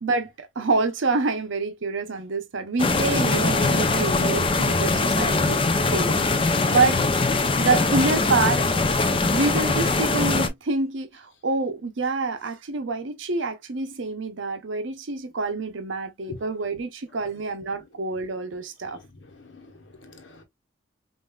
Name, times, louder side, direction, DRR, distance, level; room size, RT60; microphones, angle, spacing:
voice 1, 0.0-5.6 5.9-6.1 6.7-7.1 7.6-8.7 9.3-19.0, right 3 dB, 85° right, 0.7 m, -27 dB
sound 1, 2.8-10.5, left 3 dB, 25° left, 0.5 m, -22 dB
voice 2, 19.3-20.4, left 2 dB, 85° left, 1.2 m, -43 dB
5.4 x 2.6 x 2.3 m
head